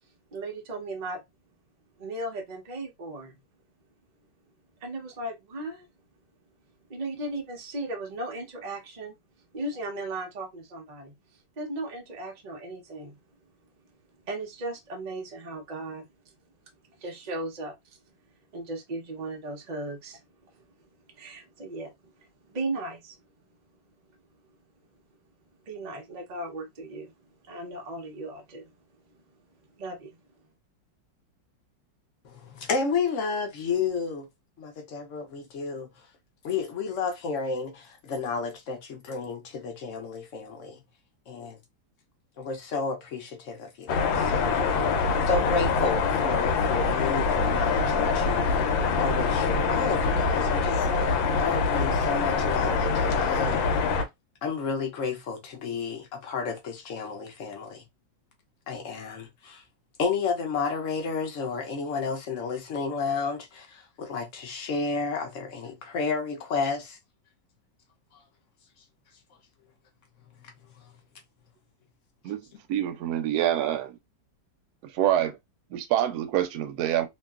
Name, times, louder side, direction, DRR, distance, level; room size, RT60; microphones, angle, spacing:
voice 1, 0.3-1.2 2.0-3.4 4.8-5.9 6.9-9.1 9.5-11.1 11.6-13.2 14.3-16.1 17.0-18.0 18.5-20.2 20.5-20.6 21.1-21.9 22.2-23.2 25.7-27.1 27.4-28.6 29.8-30.2, right 2 dB, 90° right, 0.3 m, -36 dB
voice 2, 32.2-34.3 34.6-35.9 36.4-40.8 41.3-41.6 42.4-48.5 48.9-53.7 54.4-57.8 58.7-59.6 60.0-67.0 70.8-70.9, left 5 dB, 65° left, 0.8 m, -31 dB
sound 1, 43.9-54.0, left 4 dB, 85° left, 1.3 m, -24 dB
voice 3, 72.7-74.0 74.9-75.4 75.7-77.1, right 11 dB, 70° right, 1.0 m, -26 dB
2.9 x 2.5 x 2.3 m
omnidirectional pair, 2.0 m